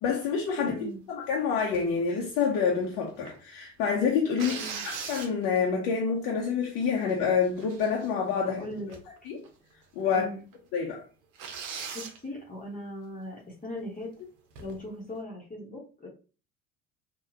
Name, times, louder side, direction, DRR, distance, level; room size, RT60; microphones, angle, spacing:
voice 1, 0.0-8.6 9.3-9.4 10.0-10.2 10.7-11.0, left 6 dB, 55° left, 0.9 m, -27 dB
voice 2, 0.6-1.0 4.5-4.8 8.6-9.3 10.1-10.4 11.9-14.3 14.6-16.1, left 1 dB, 20° left, 1.2 m, -39 dB
sound 1, 1.7-1.9 2.5-3.4 4.4-5.7 6.3-6.4 6.7-7.1 7.4-8.3 8.9-9.2 9.4-9.5 10.1-10.2 10.5-10.6 11.3-12.2 14.5-14.9, right 6 dB, 55° right, 0.8 m, -40 dB
3.7 x 2.4 x 2.8 m
figure-of-eight pair, 65°, 39 cm